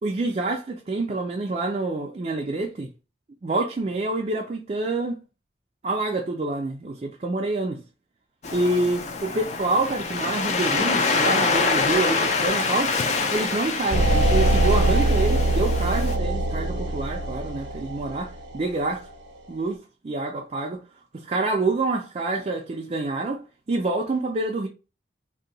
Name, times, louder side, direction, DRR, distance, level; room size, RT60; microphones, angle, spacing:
voice 1, 0.0-2.9 3.4-5.2 5.8-7.8 8.5-13.0 13.3-19.1 19.5-20.8 21.1-24.7, right 2 dB, 35° right, 0.4 m, -27 dB
Waves surf, 8.4-16.2, left 4 dB, 40° left, 0.4 m, -26 dB
sound 1, 13.9-18.7, right 1 dB, 85° right, 0.6 m, -22 dB
2.7 x 2.2 x 3.8 m
head